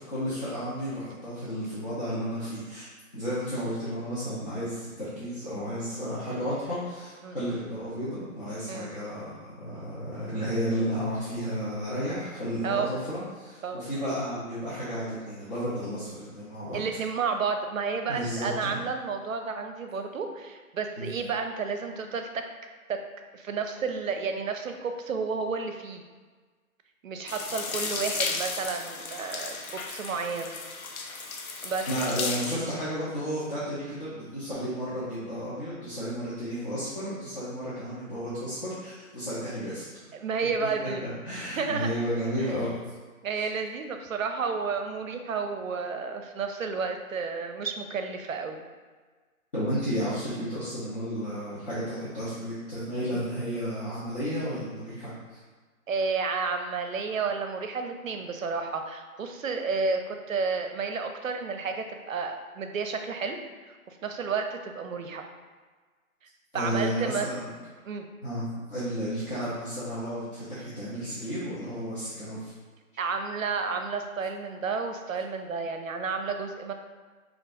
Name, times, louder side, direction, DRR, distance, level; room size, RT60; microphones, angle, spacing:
voice 1, 0.0-2.8 3.1-16.8 18.1-18.7 21.0-21.1 31.9-39.9 40.8-42.7 43.3-43.5 49.5-55.4 66.5-67.5 68.2-68.4 68.7-72.5, equal, 40° left, -11 dB, 0.8 m, -32 dB
voice 2, 16.7-22.4 22.9-23.0 23.3-26.0 27.0-30.5 31.6-32.1 40.1-41.0 41.6-41.9 42.4-42.6 43.2-48.7 53.1-53.2 55.9-63.4 63.6-65.3 66.5-67.3 67.9-68.1 73.0-76.7, right 5 dB, 65° right, 6 dB, 0.5 m, -31 dB
sound 1, 27.3-32.6, left 4 dB, 75° left, 0.6 m, -34 dB
3.7 x 2.4 x 2.5 m, 1.4 s
figure-of-eight pair, 165°, 43 cm